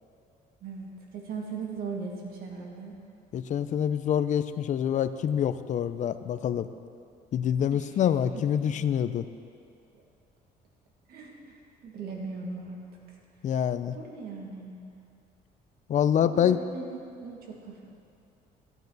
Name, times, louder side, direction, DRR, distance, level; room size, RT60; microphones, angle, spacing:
voice 1, 0.6-2.9 7.7-8.0 8.3-8.4 11.1-12.8 13.1-13.2 13.9-14.8 16.2-17.8, right 4 dB, 65° right, -1 dB, 2.2 m, -39 dB
voice 2, 3.3-6.7 7.3-9.3 13.4-14.0 15.9-16.6, left 9 dB, 45° left, 12 dB, 0.5 m, -26 dB
15.0 x 9.1 x 4.0 m, 2.5 s
cardioid pair, 110°, 17 cm